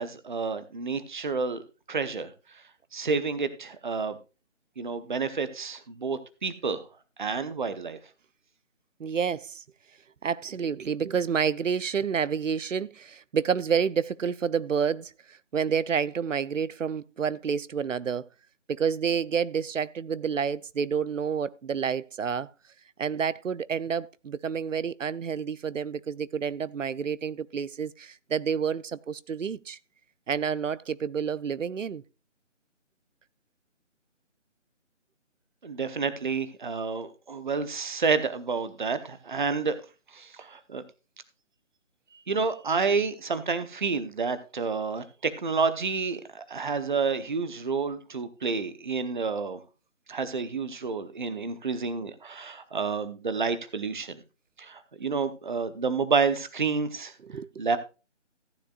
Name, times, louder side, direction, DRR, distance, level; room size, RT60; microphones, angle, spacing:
voice 1, 0.0-1.6 1.9-2.3 2.9-4.2 4.8-6.8 7.2-8.0 35.6-39.8 40.1-40.8 42.3-49.6 50.1-54.2 54.6-57.1 57.6-57.8, right 4 dB, 40° right, 0.9 m, -29 dB
voice 2, 9.0-9.6 10.2-18.2 18.7-22.5 23.0-29.8 30.3-32.0 57.2-57.5, right 7 dB, 80° right, 0.6 m, -29 dB
15.0 x 9.9 x 2.4 m
figure-of-eight pair, 160°, 37 cm